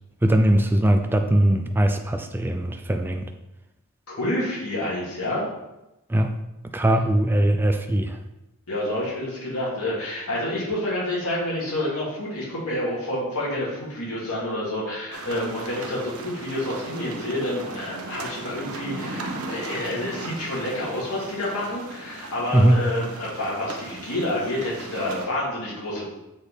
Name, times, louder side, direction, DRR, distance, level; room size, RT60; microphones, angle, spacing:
voice 1, 0.2-3.2 6.1-6.4 6.7-8.2 22.5-22.8, right 1 dB, 10° right, 5 dB, 0.4 m, -20 dB
voice 2, 4.1-5.5 8.7-26.0, left 1 dB, 70° left, -6 dB, 2.5 m, -28 dB
sound 1, 15.1-25.3, right 2 dB, 70° right, 1.0 m, -37 dB
7.1 x 4.2 x 4.9 m, 0.95 s
head